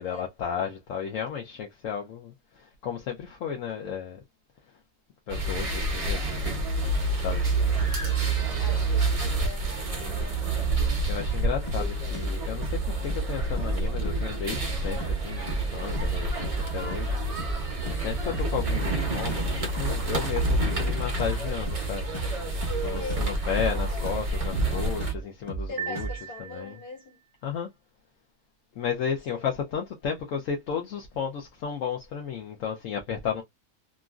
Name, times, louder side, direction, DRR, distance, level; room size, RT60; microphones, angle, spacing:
voice 1, 0.0-4.2 5.3-8.2 11.1-17.2 17.8-22.1 22.8-26.1 26.4-26.8 27.4-27.7 28.7-33.4, left 7 dB, 70° left, 1.0 m, -33 dB
sound 1, 5.3-25.1, right 2 dB, 40° right, 0.5 m, -28 dB
voice 2, 8.0-10.4 11.8-12.0 22.8-23.3 23.6-24.1 25.7-27.2 29.3-29.5, left 4 dB, 45° left, 1.5 m, -42 dB
sound 2, 11.2-11.4 11.7-11.9 12.1-12.4 12.6-12.8 13.1-13.3 13.6-13.8 14.0-14.3 14.5-14.7 15.0-15.2 15.5-15.7 16.0-16.2 16.4-16.7 16.9-17.1 17.4-17.6 17.9-18.1 18.3-19.0 19.3-19.5 19.8-20.0 20.2-20.5 20.7-20.9 21.2-21.4 21.7-21.9 22.1-22.4 22.6-22.8 23.1-23.3 23.6-23.8 24.1-24.3 24.5-24.7 25.0-25.2 25.5-25.7 26.0-26.2, right 3 dB, 25° left, 0.8 m, -33 dB
sound 3, 25.8-27.2, right 9 dB, 85° right, 1.1 m, -38 dB
3.0 x 2.5 x 2.3 m
omnidirectional pair, 1.5 m